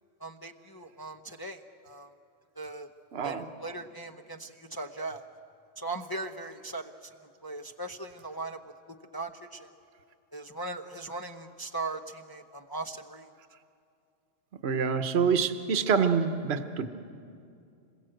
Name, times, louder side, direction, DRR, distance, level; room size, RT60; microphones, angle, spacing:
voice 1, 0.2-2.1 2.6-2.9 3.2-5.3 5.8-7.1 7.4-8.6 9.1-9.7 10.3-13.3, right 2 dB, 20° left, 2 dB, 0.7 m, -39 dB
voice 2, 3.1-3.5 14.6-16.9, right 6 dB, 55° right, 9 dB, 1.2 m, -26 dB
27.0 x 21.0 x 7.8 m, 2.5 s
omnidirectional pair, 1.3 m